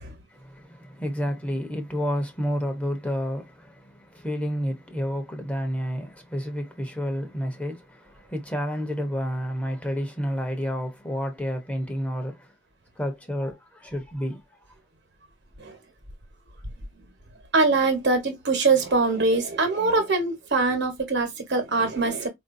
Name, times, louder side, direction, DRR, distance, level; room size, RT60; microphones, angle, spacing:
voice 1, 0.3-12.5 13.0-14.4, equal, 5° left, 0.8 m, -30 dB
voice 2, 17.5-22.3, right 3 dB, 60° right, 1.2 m, -23 dB
4.4 x 2.6 x 2.6 m
head